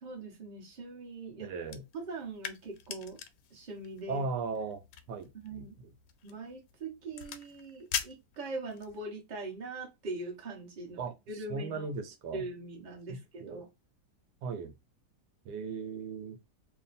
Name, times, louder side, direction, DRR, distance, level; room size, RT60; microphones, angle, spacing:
voice 1, 0.0-1.5 1.9-3.2 3.5-4.2 5.3-5.7 6.2-11.9 12.3-13.7, right 2 dB, 30° right, 1.0 m, -42 dB
voice 2, 1.4-1.8 4.1-4.8 5.1-5.9 11.0-12.4 13.1-13.6 14.4-14.7 15.4-16.4, right 4 dB, 85° right, 1.3 m, -37 dB
sound 1, 1.6-9.0, left 9 dB, 80° left, 1.1 m, -43 dB
3.0 x 2.1 x 4.0 m
omnidirectional pair, 1.8 m